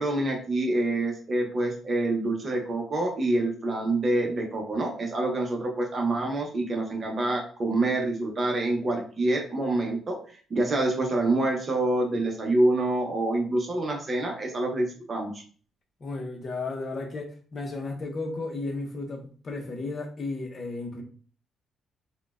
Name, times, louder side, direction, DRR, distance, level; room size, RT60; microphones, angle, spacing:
voice 1, 0.0-10.2 10.5-15.4, right 2 dB, 40° right, 0.7 m, -26 dB
voice 2, 16.0-21.0, left 3 dB, 40° left, 0.7 m, -34 dB
3.9 x 2.2 x 2.3 m
cardioid pair, 90°, 0 cm